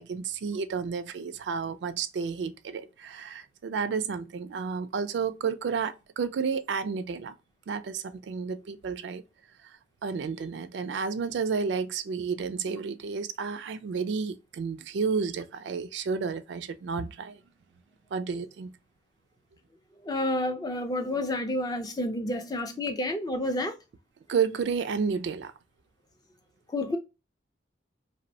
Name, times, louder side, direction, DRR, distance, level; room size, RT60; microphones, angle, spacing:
voice 1, 0.0-7.3 7.7-9.2 9.6-9.8 10.0-17.4 18.1-18.7 24.3-25.5, right 5 dB, 75° right, 0.3 m, -31 dB
voice 2, 20.0-23.7 26.7-27.0, left 1 dB, 20° left, 0.4 m, -29 dB
2.9 x 2.0 x 2.6 m
head